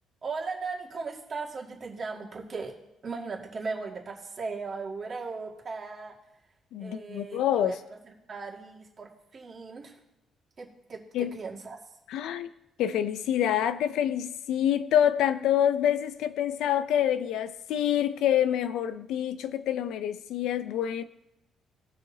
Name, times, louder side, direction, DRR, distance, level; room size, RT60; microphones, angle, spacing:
voice 1, 0.2-2.7 3.0-6.2 6.8-9.9 10.6-11.8, right 4 dB, 35° right, 2.1 m, -37 dB
voice 2, 6.7-7.7 11.1-11.4 12.1-12.5 12.8-21.0, left 10 dB, 85° left, 0.6 m, -26 dB
19.0 x 6.6 x 2.8 m
cardioid pair, 135°, 0 cm